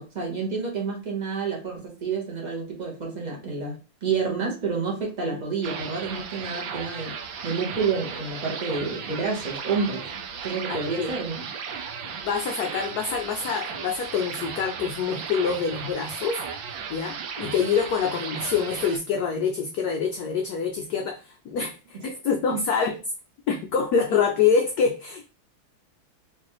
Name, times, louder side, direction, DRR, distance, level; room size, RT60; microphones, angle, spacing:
voice 1, 0.0-7.2 7.4-10.1 10.4-11.4, right 5 dB, 35° right, -1 dB, 0.7 m, -29 dB
sound 1, 5.6-19.0, right 6 dB, 75° right, 1.3 m, -36 dB
voice 2, 10.7-11.1 12.0-16.4 16.9-23.0 23.5-25.3, left 6 dB, 85° left, 3 dB, 0.8 m, -26 dB
3.2 x 3.1 x 3.0 m, 0.33 s
omnidirectional pair, 2.2 m